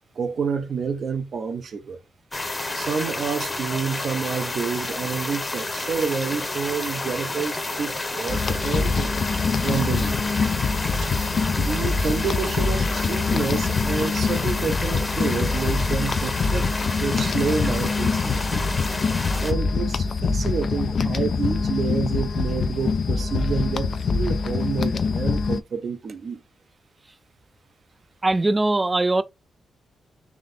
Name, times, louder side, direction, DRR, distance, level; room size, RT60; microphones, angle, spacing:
voice 1, 0.2-2.0 2.7-9.1 9.6-10.2 11.0-11.1 11.6-16.7 17.0-18.7 19.4-26.4, right 5 dB, 60° right, 0.8 m, -29 dB
sound 1, 2.3-19.5, left 2 dB, 25° left, 0.9 m, -30 dB
sound 2, 8.3-25.6, left 4 dB, 60° left, 0.4 m, -24 dB
voice 2, 28.2-29.2, right 2 dB, 25° right, 0.4 m, -20 dB
3.5 x 2.7 x 3.6 m
cardioid pair, 70°, 0 cm